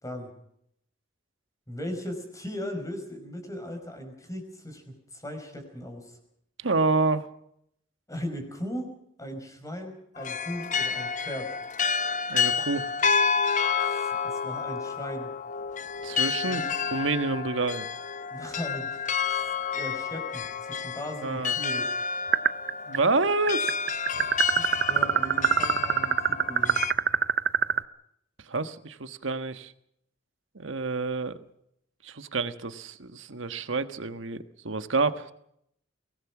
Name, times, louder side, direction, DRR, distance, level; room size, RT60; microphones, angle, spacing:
voice 1, 1.7-6.2 8.1-11.5 13.9-15.3 16.4-16.7 18.3-19.0 19.7-21.9 24.1-26.8, equal, 20° left, 6 dB, 5.2 m, -38 dB
voice 2, 6.6-7.3 12.3-12.9 16.0-16.6 16.9-17.8 21.2-21.5 22.9-23.8 28.5-29.7 30.5-31.4 32.0-35.3, right 3 dB, 80° right, 10 dB, 1.4 m, -28 dB
sound 1, 10.2-26.9, left 5 dB, 40° left, 1.0 m, -30 dB
sound 2, 22.3-23.0 23.2-27.8, right 8 dB, 60° right, 0.7 m, -23 dB
24.0 x 19.0 x 6.1 m, 0.73 s
head